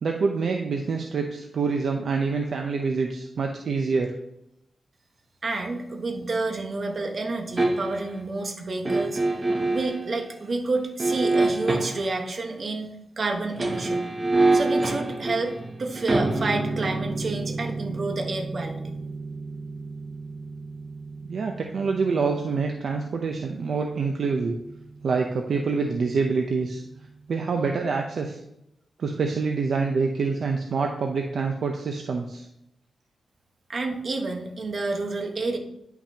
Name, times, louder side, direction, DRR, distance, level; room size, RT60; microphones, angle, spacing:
voice 1, 0.0-4.1 21.2-24.6 25.0-26.8 27.3-28.4 29.0-32.5, right 4 dB, 65° right, 3 dB, 0.6 m, -26 dB
voice 2, 5.4-9.4 9.7-12.9 13.2-14.1 14.5-15.5 15.8-18.9 33.7-35.6, right 3 dB, 45° right, 3 dB, 1.2 m, -29 dB
sound 1, 7.6-8.1 8.8-10.0 11.0-12.2 13.4-24.4 24.7-24.8, right 2 dB, 25° right, 1.1 m, -27 dB
9.9 x 5.9 x 2.9 m, 0.82 s
wide cardioid pair, 115°, 0 cm